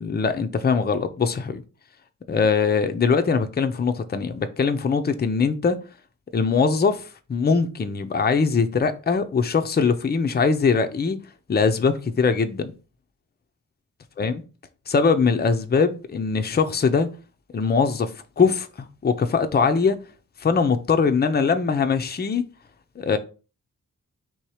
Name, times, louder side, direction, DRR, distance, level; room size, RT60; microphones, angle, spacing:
voice 1, 0.0-1.6 2.3-5.8 6.3-7.0 7.3-11.2 11.5-12.7 14.2-14.4 14.9-17.1 17.5-18.1 18.4-18.7 19.0-20.0 20.4-22.4 23.0-23.2, left 5 dB, 30° left, 0.6 m, -21 dB
3.8 x 2.9 x 4.8 m
cardioid pair, 80°, 32 cm